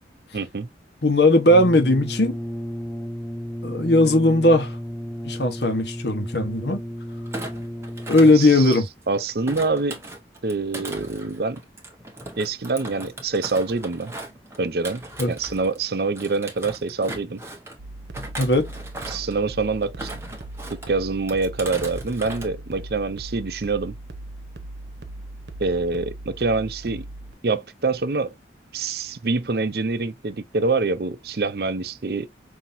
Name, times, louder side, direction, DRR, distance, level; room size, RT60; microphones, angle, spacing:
voice 1, 0.3-0.7 8.3-8.8 9.1-10.0 10.4-11.6 12.4-14.1 14.6-17.4 19.1-20.1 20.7-23.9 25.6-27.0 27.4-28.3 28.7-32.3, right 3 dB, 55° right, 0.6 m, -25 dB
voice 2, 1.0-2.4 3.6-4.8 5.2-6.8 8.1-8.9 15.2-15.3 18.4-18.7, left 1 dB, 70° left, 1.1 m, -18 dB
Brass instrument, 1.4-8.6, equal, 5° left, 0.5 m, -33 dB
Thump thud, 7.3-9.0 9.5-15.8 16.1-17.8 18.1-19.4 19.8-20.9 21.3-22.5 22.8-23.1, right 2 dB, 15° right, 1.0 m, -38 dB
sound 1, 17.8-27.3, right 2 dB, 80° right, 0.9 m, -39 dB
5.7 x 2.8 x 2.6 m
head